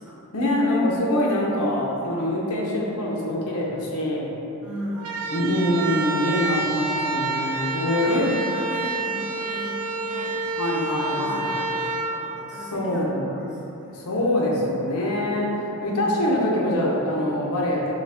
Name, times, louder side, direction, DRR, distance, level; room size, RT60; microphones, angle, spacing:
voice 1, 0.3-4.3 5.3-8.3 10.6-11.5 12.7-13.2 13.9-17.9, left 1 dB, 85° left, -3 dB, 0.7 m, -24 dB
voice 2, 4.6-5.2 7.9-10.4 10.9-14.0 15.7-16.2, equal, 5° right, -8 dB, 0.7 m, -38 dB
sound 1, 4.9-13.1, right 3 dB, 80° right, 0.4 m, -29 dB
4.0 x 3.1 x 3.3 m, 2.9 s
head